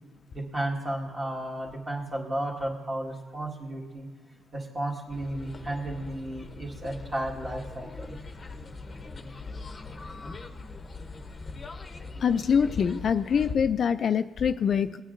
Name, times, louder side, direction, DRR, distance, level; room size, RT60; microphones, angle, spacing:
voice 1, 0.3-4.1 4.5-8.2, right 1 dB, 25° right, -2 dB, 1.7 m, -33 dB
sound 1, 5.1-13.5, left 3 dB, 30° left, 0.8 m, -42 dB
voice 2, 12.2-15.0, left 7 dB, 50° left, 10 dB, 0.3 m, -24 dB
17.5 x 9.1 x 2.6 m, 1.4 s
cardioid pair, 120°, 0 cm